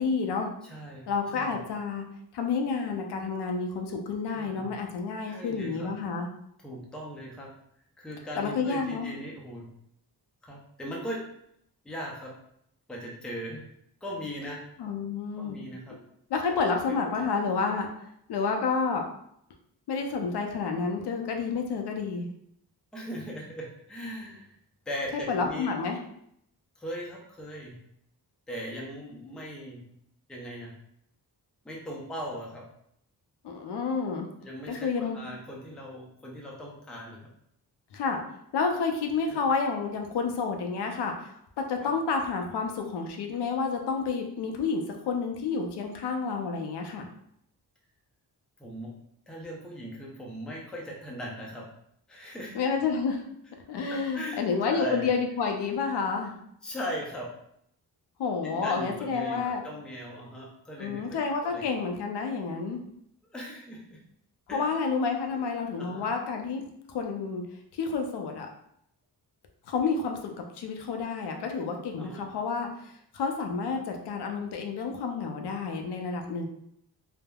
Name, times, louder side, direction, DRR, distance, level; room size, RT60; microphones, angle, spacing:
voice 1, 0.0-0.5 1.1-2.0 2.3-6.3 8.4-9.1 14.8-15.6 16.3-17.9 18.3-19.0 19.9-22.3 25.3-26.0 33.4-34.3 34.7-35.2 37.9-38.2 38.5-47.1 52.5-53.2 53.7-56.4 58.2-59.6 60.8-62.8 64.5-67.4 67.7-68.5 69.7-76.5, left 5 dB, 80° left, 3 dB, 0.5 m, -30 dB
voice 2, 0.6-1.6 4.3-4.7 5.2-5.9 6.6-7.5 8.0-9.7 10.4-11.3 11.8-12.3 12.9-13.7 14.0-14.6 15.4-16.0 22.9-24.5 24.9-25.7 26.8-27.8 28.5-29.9 30.3-30.7 31.6-32.6 34.4-37.3 39.3-39.4 41.8-41.9 48.6-48.9 49.3-51.7 52.1-52.5 53.9-55.1 56.6-57.3 58.5-61.0 61.4-61.6 63.3-64.0 64.5-64.7 65.3-65.4 65.8-66.1 72.0-72.2 73.7-73.8, equal, ahead, -3 dB, 0.4 m, -39 dB
3.3 x 2.0 x 2.2 m, 0.73 s
wide cardioid pair, 165°, 40 cm